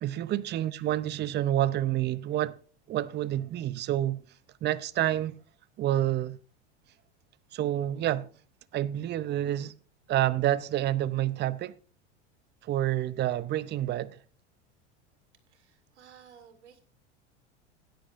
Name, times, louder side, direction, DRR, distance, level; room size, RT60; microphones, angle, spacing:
voice 1, 0.0-2.6 2.9-4.2 4.6-5.4 5.8-6.4 7.5-8.3 8.7-9.7 10.1-11.7 12.6-14.2, right 13 dB, 30° right, 0.6 m, -28 dB
voice 2, 15.5-16.8, right 8 dB, 85° right, 2.4 m, -55 dB
17.0 x 10.0 x 2.6 m
hypercardioid pair, 90°, 33 cm